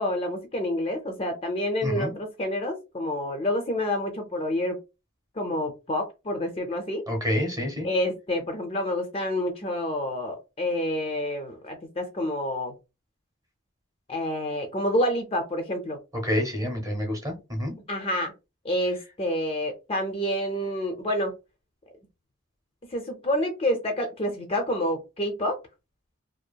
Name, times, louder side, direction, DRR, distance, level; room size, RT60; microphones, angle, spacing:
voice 1, 0.0-4.8 5.4-7.1 7.8-12.7 14.1-16.0 17.9-18.3 18.6-21.3 22.9-25.6, left 1 dB, 25° left, 4 dB, 0.4 m, -28 dB
voice 2, 1.8-2.1 7.1-7.9 16.1-17.7, equal, 15° right, 2 dB, 0.7 m, -28 dB
2.7 x 2.3 x 2.2 m, 0.27 s
head